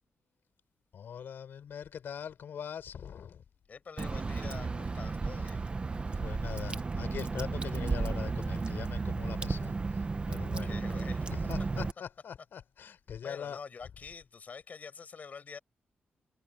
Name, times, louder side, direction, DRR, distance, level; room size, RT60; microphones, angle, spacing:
voice 1, 0.9-3.4 6.2-10.8 11.2-13.6, left 8 dB, 70° left, 4.8 m, -42 dB
voice 2, 3.7-5.6 10.6-11.2 13.2-15.6, left 5 dB, 45° left, 5.4 m, -46 dB
Water / Drip, 4.0-11.9, right 4 dB, 30° right, 0.9 m, -33 dB
wide cardioid pair, 115°, 4 cm